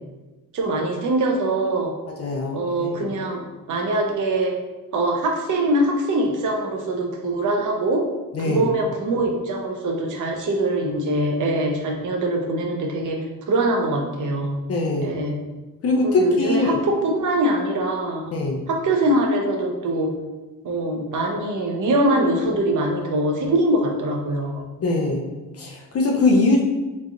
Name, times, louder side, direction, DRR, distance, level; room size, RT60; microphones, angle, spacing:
voice 1, 0.5-1.9 2.5-3.4 3.7-4.5 4.9-8.0 8.4-13.2 13.5-14.5 15.0-15.4 16.0-18.2 18.7-20.1 20.6-24.7, right 1 dB, 60° right, 2 dB, 0.7 m, -23 dB
voice 2, 2.2-2.9 8.3-8.7 14.7-15.1 15.8-16.8 18.3-18.6 24.8-25.2 25.6-26.6, left 2 dB, 45° left, 0 dB, 0.6 m, -21 dB
3.7 x 3.2 x 2.4 m, 1.2 s
cardioid pair, 105°, 34 cm